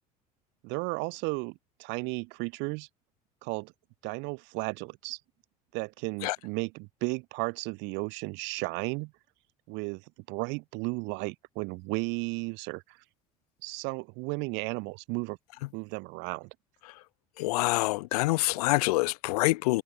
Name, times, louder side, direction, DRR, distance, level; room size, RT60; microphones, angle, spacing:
voice 1, 0.6-2.9 3.4-3.7 4.0-5.2 5.7-9.1 9.7-13.0 13.6-15.4 15.7-16.5, right 29 dB, 75° right, 2.4 m, -34 dB
voice 2, 17.4-19.8, left 21 dB, 85° left, 0.7 m, -26 dB
supercardioid pair, 80°, 19 cm